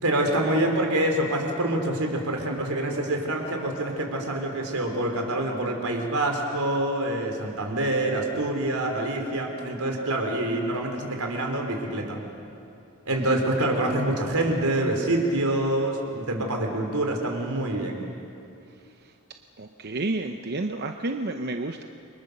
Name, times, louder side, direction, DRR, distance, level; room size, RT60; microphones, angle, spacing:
voice 1, 0.0-12.2 13.1-18.0, right 1 dB, 85° right, 3 dB, 3.9 m, -26 dB
voice 2, 19.6-21.9, right 2 dB, 45° right, 5 dB, 0.8 m, -30 dB
29.5 x 23.5 x 6.7 m, 2.7 s
head